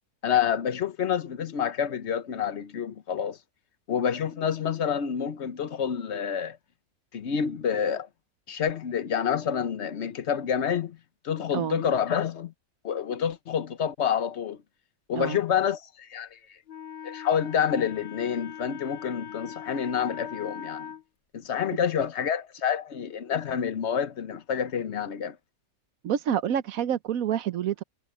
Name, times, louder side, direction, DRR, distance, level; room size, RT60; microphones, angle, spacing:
voice 1, 0.2-3.4 3.9-6.6 7.1-8.1 8.5-11.0 11.2-12.5 12.8-14.6 15.1-16.6 17.0-20.9 21.3-25.4, left 8 dB, 50° left, 1.1 m, -28 dB
Wind instrument woodwind instrument, 16.7-21.0, left 8 dB, 80° left, 0.4 m, -41 dB
voice 2, 26.0-27.8, right 9 dB, 65° right, 1.2 m, -28 dB
omnidirectional pair, 1.7 m